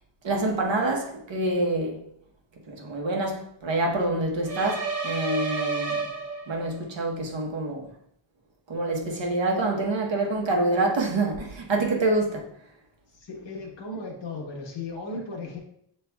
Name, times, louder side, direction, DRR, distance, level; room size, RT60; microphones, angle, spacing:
voice 1, 0.2-2.0 2.7-6.0 6.5-7.9 8.7-12.5, right 2 dB, 70° right, 1.1 m, -26 dB
sound 1, 4.5-6.8, right 4 dB, 35° right, 0.7 m, -30 dB
voice 2, 13.1-15.6, left 3 dB, 65° left, 1.1 m, -36 dB
6.9 x 3.2 x 2.3 m
wide cardioid pair, 160°, 46 cm